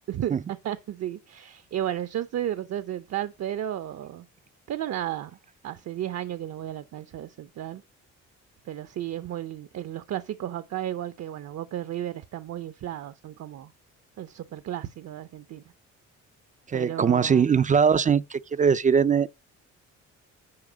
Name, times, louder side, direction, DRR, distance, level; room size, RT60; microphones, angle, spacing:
voice 1, 0.1-4.2 4.7-5.4 5.6-7.8 8.7-13.7 14.2-15.6 16.7-17.5, right 11 dB, 60° right, 0.7 m, -33 dB
voice 2, 16.7-19.3, right 6 dB, 25° right, 0.3 m, -21 dB
9.7 x 4.9 x 5.1 m
cardioid pair, 90°, 30 cm